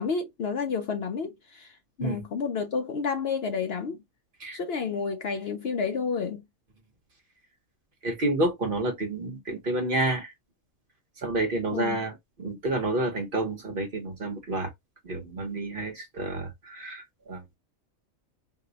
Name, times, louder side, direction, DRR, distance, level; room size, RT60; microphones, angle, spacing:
voice 1, 0.0-4.0 4.5-6.4 11.7-12.0, left 5 dB, 60° left, 0.7 m, -30 dB
voice 2, 8.0-10.3 11.2-14.7 15.0-17.4, right 2 dB, 45° right, 1.0 m, -29 dB
2.7 x 2.1 x 3.8 m
omnidirectional pair, 1.4 m